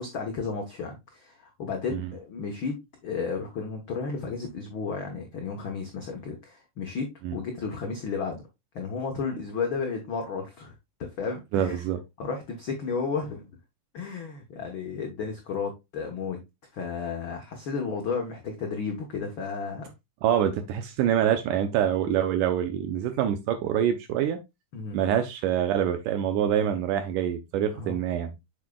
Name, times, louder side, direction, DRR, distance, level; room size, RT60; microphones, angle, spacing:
voice 1, 0.0-8.5 8.7-11.8 12.2-13.5 13.9-16.4 16.7-19.9 24.7-25.0 27.7-28.0, left 5 dB, 85° left, 1.1 m, -33 dB
voice 2, 11.5-12.0 20.2-24.4 24.9-28.3, right 10 dB, 75° right, 2.1 m, -25 dB
7.2 x 6.2 x 2.2 m
omnidirectional pair, 3.9 m